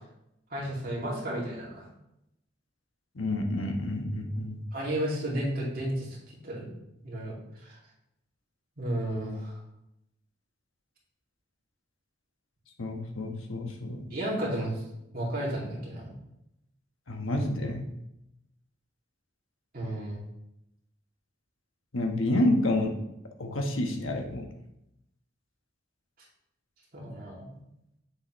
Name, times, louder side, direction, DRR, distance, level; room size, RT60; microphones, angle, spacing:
voice 1, 0.5-1.9 4.7-6.7 7.0-7.3 7.6-7.8 8.8-9.5 14.1-14.8 15.1-16.1 19.7-20.2 26.9-27.4, right 1 dB, 45° right, -5 dB, 2.4 m, -32 dB
voice 2, 3.1-4.6 12.8-14.1 17.1-17.9 21.9-22.9 23.4-24.5, left 1 dB, 85° left, 3 dB, 1.2 m, -29 dB
7.9 x 6.7 x 3.1 m, 0.84 s
head